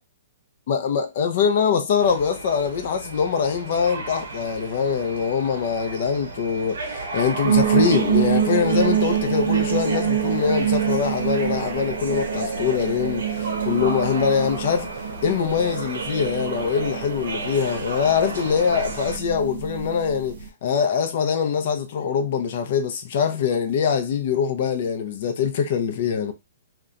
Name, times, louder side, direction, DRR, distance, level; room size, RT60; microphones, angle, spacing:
voice 1, 0.7-14.9 15.2-26.3, left 6 dB, 40° left, 0.5 m, -23 dB
sound 1, 2.0-19.2, right 3 dB, 85° right, 0.7 m, -33 dB
sound 2, 7.4-20.5, right 9 dB, 55° right, 0.4 m, -26 dB
2.8 x 2.1 x 2.4 m
hypercardioid pair, 180°, 0 cm